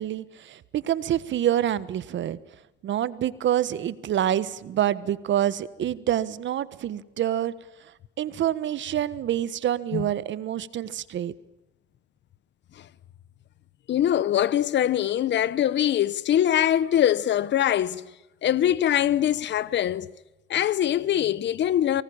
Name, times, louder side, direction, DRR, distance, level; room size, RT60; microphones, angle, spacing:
voice 1, 0.0-2.4 2.8-7.5 8.2-11.3, right 11 dB, 70° right, 1.4 m, -27 dB
voice 2, 13.9-18.0 18.4-20.1 20.5-22.0, left 11 dB, 65° left, 1.0 m, -23 dB
24.0 x 19.0 x 8.7 m
cardioid pair, 90°, 20 cm